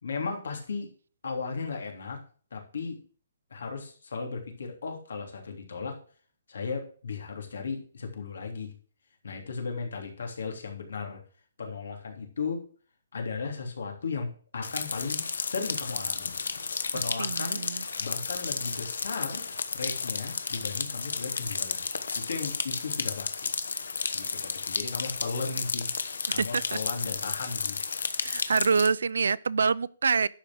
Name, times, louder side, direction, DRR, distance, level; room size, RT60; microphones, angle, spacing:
voice 1, 0.0-0.9 1.2-2.2 2.5-3.0 3.5-6.0 6.5-8.7 9.2-11.2 11.6-12.7 13.1-16.3 16.9-17.7 18.0-19.4 19.7-21.9 22.1-23.5 24.1-25.9 26.3-27.8, left 4 dB, 70° left, 3.1 m, -36 dB
sound 1, 14.6-28.9, left 5 dB, 90° left, 1.2 m, -32 dB
voice 2, 17.2-17.8 26.3-26.6 28.2-30.3, right 5 dB, 85° right, 0.5 m, -26 dB
12.0 x 5.1 x 6.2 m
hypercardioid pair, 175°, 0 cm